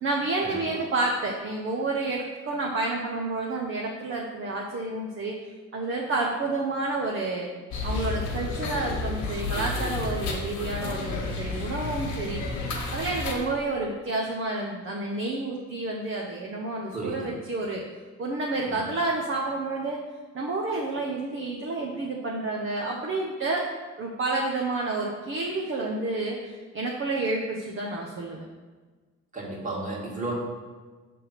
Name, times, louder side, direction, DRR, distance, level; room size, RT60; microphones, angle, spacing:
voice 1, 0.0-5.3 5.7-7.5 7.8-12.4 12.9-17.8 18.2-20.0 20.3-23.6 24.0-28.4, right 2 dB, 45° right, -1 dB, 0.9 m, -29 dB
sound 1, 7.7-13.4, left 3 dB, 75° left, 1.3 m, -31 dB
voice 2, 16.9-17.3 18.7-18.9 29.3-30.3, right 2 dB, 25° right, -4 dB, 2.1 m, -33 dB
5.7 x 3.7 x 5.8 m, 1.4 s
cardioid pair, 90°, 30 cm